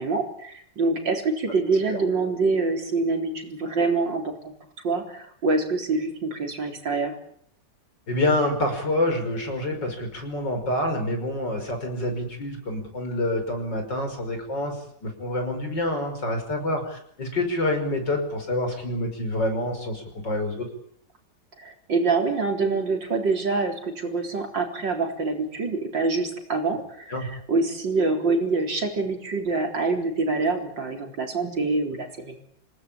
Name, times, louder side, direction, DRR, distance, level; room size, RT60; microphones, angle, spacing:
voice 1, 0.0-4.5 4.8-7.1 21.6-32.4, right 3 dB, 85° right, 4 dB, 4.7 m, -25 dB
voice 2, 8.1-20.7 27.1-27.3, left 1 dB, 75° left, 5 dB, 6.2 m, -27 dB
27.0 x 18.5 x 8.8 m, 0.65 s
omnidirectional pair, 1.9 m